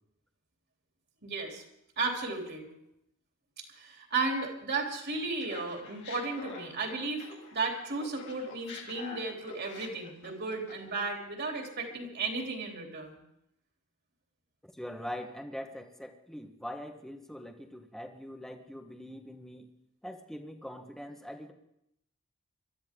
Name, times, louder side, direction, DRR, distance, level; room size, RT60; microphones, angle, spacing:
voice 1, 1.2-1.6 2.0-2.6 3.6-13.2, right 3 dB, 55° right, 1 dB, 3.2 m, -34 dB
Laughter, 5.4-7.7 8.0-11.2, left 4 dB, 60° left, 2.7 m, -47 dB
voice 2, 14.6-19.7 20.0-21.5, equal, ahead, 4 dB, 1.2 m, -42 dB
23.0 x 13.0 x 3.7 m, 0.78 s
head